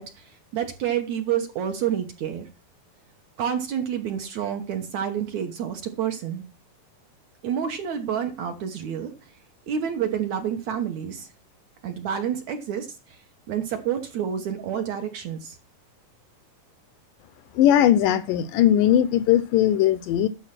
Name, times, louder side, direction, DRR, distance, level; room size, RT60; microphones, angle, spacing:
voice 1, 0.0-2.5 3.4-6.4 7.4-9.3 9.7-11.3 11.8-15.6, right 9 dB, 65° right, 2.0 m, -29 dB
voice 2, 17.6-20.3, left 11 dB, 80° left, 2.1 m, -19 dB
12.0 x 5.4 x 5.9 m
omnidirectional pair, 4.2 m